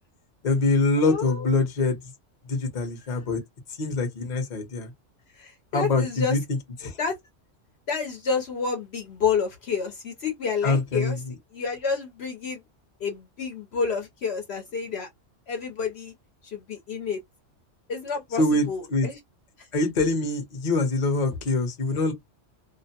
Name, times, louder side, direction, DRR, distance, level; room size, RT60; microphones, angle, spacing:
voice 1, 0.4-2.0 2.5-3.4 3.8-4.9 5.7-6.4 6.8-7.0 10.6-11.3 18.4-19.1 19.7-22.1, left 2 dB, 40° left, 0.9 m, -24 dB
voice 2, 1.1-1.5 5.4-6.4 7.0-7.2 7.9-11.2 11.5-12.6 13.0-15.1 15.5-16.1 16.4-17.2 17.9-19.2 19.6-19.7, left 5 dB, 65° left, 0.9 m, -29 dB
2.5 x 2.1 x 2.8 m
omnidirectional pair, 1.3 m